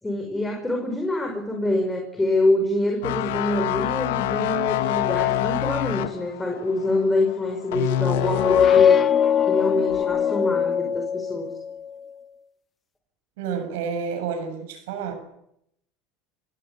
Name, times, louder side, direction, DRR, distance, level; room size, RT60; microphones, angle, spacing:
voice 1, 0.0-9.0 9.4-11.5, left 2 dB, 10° left, 2 dB, 5.3 m, -25 dB
sound 1, 3.0-9.0 9.4-9.7, left 12 dB, 85° left, 1.7 m, -26 dB
sound 2, 8.2-11.7, left 8 dB, 30° left, 1.0 m, -21 dB
voice 2, 13.4-15.1, right 6 dB, 80° right, 8 dB, 6.9 m, -29 dB
26.0 x 16.5 x 8.5 m, 0.76 s
supercardioid pair, 110°, 0 cm